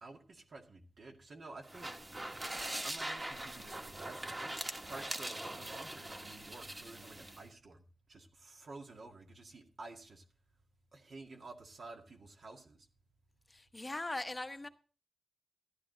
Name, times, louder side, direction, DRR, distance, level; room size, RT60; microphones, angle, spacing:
voice 1, 0.0-1.9 2.8-4.5 4.8-7.8 8.1-10.2 10.9-12.8, right 3 dB, 65° right, 2 dB, 2.1 m, -51 dB
sound 1, 1.6-7.4, right 1 dB, 25° right, 1.7 m, -42 dB
voice 2, 13.5-14.7, left 2 dB, 25° left, 8 dB, 1.0 m, -40 dB
13.5 x 11.0 x 3.9 m, 0.37 s
cardioid pair, 75°, 0 cm